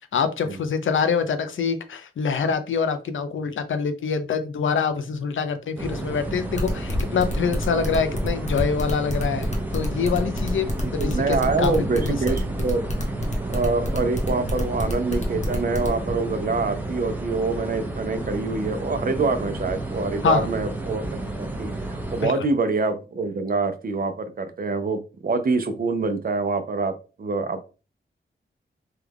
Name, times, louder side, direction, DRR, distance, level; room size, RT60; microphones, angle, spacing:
voice 1, 0.1-12.2 20.2-20.5 22.2-22.3, left 5 dB, 90° left, 9 dB, 0.5 m, -25 dB
sound 1, 5.8-22.3, right 2 dB, 10° right, 0.7 m, -31 dB
sound 2, 6.5-15.9, left 1 dB, 35° left, 0.9 m, -29 dB
voice 2, 10.8-12.8 13.5-26.9 27.2-27.6, right 3 dB, 50° right, 9 dB, 0.5 m, -25 dB
3.2 x 2.3 x 3.5 m, 0.33 s
wide cardioid pair, 120°, 20 cm